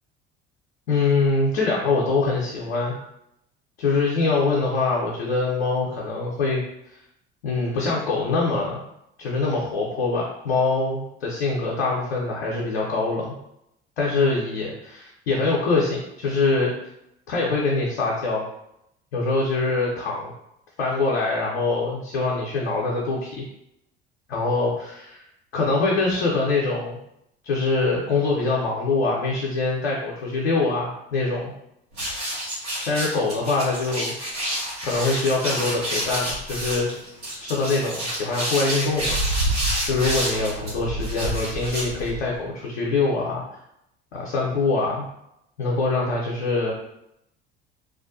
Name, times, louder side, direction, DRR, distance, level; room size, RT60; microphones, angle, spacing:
voice 1, 0.9-3.0 3.8-6.9 7.4-8.8 9.2-13.3 14.0-16.7 17.3-18.4 19.1-20.3 20.8-23.4 24.3-25.2 25.5-27.0 27.4-31.5 32.9-34.2 34.8-36.9 37.4-39.2 39.9-43.4 44.1-45.0 45.6-46.7, left 3 dB, 85° left, -4 dB, 0.5 m, -24 dB
sound 1, 31.9-42.4, right 1 dB, 85° right, 1.2 m, -28 dB
2.4 x 2.2 x 2.5 m, 0.80 s
hypercardioid pair, 60°, 31 cm